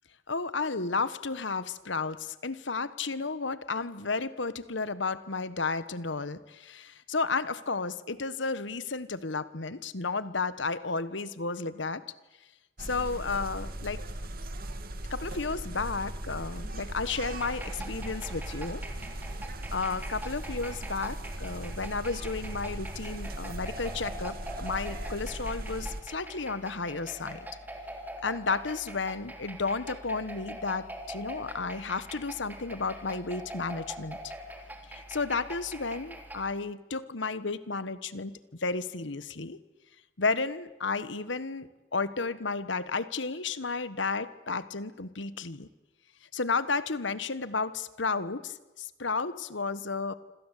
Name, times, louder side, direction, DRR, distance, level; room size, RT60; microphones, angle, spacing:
voice 1, 0.3-12.0 12.8-14.0 15.1-18.8 19.7-27.5 28.2-34.3 34.9-39.6 40.2-45.7 46.3-50.1, left 4 dB, 70° left, 14 dB, 1.4 m, -32 dB
sound 1, 12.8-26.0, right 1 dB, 50° right, 2.4 m, -38 dB
sound 2, 17.2-36.5, right 1 dB, 10° right, 3.4 m, -43 dB
27.0 x 26.0 x 8.4 m, 1.1 s
head